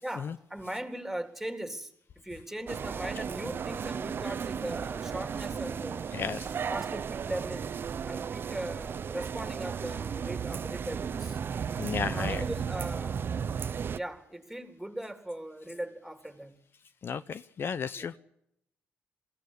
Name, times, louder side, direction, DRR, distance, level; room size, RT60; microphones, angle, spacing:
voice 1, 0.0-6.1 6.7-7.8 8.1-11.4 11.9-13.3 13.9-16.6 17.9-18.2, right 1 dB, 5° right, 3.5 m, -39 dB
sound 1, 2.7-14.0, right 7 dB, 50° right, 0.7 m, -34 dB
voice 2, 6.1-6.5 11.8-12.4 17.0-18.2, left 6 dB, 55° left, 0.8 m, -33 dB
22.0 x 16.0 x 8.4 m
supercardioid pair, 65°, 5 cm